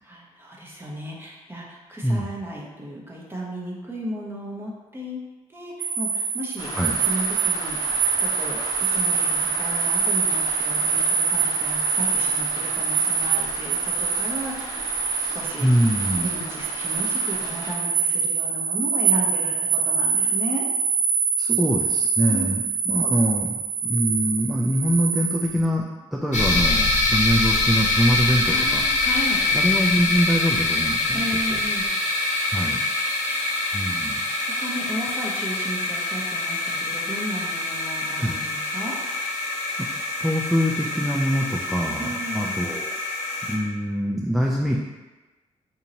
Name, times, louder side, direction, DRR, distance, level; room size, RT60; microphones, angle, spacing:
voice 1, 0.0-5.2 5.5-6.7 7.0-7.8 8.2-15.7 16.2-20.6 22.3-22.6 28.4-29.5 31.1-31.9 34.5-39.0 42.0-42.6, equal, 15° right, -4 dB, 0.9 m, -34 dB
sound 1, 5.8-25.6, right 6 dB, 55° right, 0.5 m, -25 dB
Rain, 6.6-17.7, left 1 dB, 30° left, 0.8 m, -37 dB
voice 2, 15.6-16.3 21.4-25.9 26.1-28.8 29.5-31.3 31.5-31.6 32.5-32.8 33.7-34.2 38.2-38.3 39.8-39.9 40.2-42.9 43.5-44.8, equal, ahead, -2 dB, 0.4 m, -24 dB
sound 2, 26.3-43.6, left 2 dB, 70° left, 1.0 m, -25 dB
4.0 x 2.8 x 2.7 m, 1.2 s
cardioid pair, 80°, 13 cm